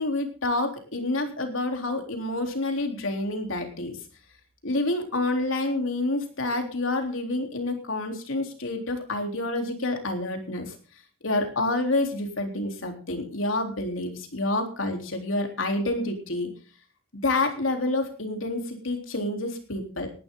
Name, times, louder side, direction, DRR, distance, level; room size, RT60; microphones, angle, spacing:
voice 1, 0.0-4.0 4.6-10.8 11.2-16.5 17.2-20.1, left 2 dB, 90° left, 4 dB, 3.7 m, -28 dB
18.5 x 12.0 x 3.9 m, 0.38 s
head